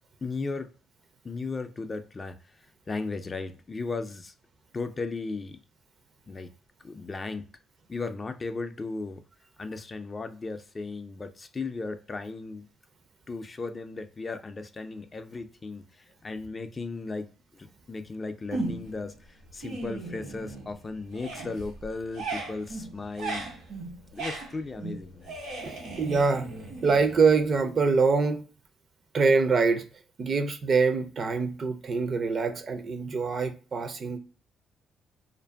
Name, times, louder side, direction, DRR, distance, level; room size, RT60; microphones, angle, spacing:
voice 1, 0.2-0.7 1.2-2.4 2.9-4.3 4.7-5.6 6.3-6.5 6.8-7.4 7.9-9.2 9.6-12.6 13.3-23.4 24.1-25.4, left 3 dB, 30° left, 0.3 m, -36 dB
sound 1, 18.5-19.1 19.4-20.8 21.1-27.6, right 3 dB, 90° right, 1.2 m, -37 dB
voice 2, 25.6-26.5 26.8-28.4 29.1-29.8 30.2-34.2, right 4 dB, 45° right, 0.4 m, -24 dB
2.5 x 2.4 x 2.2 m
cardioid pair, 90°, 0 cm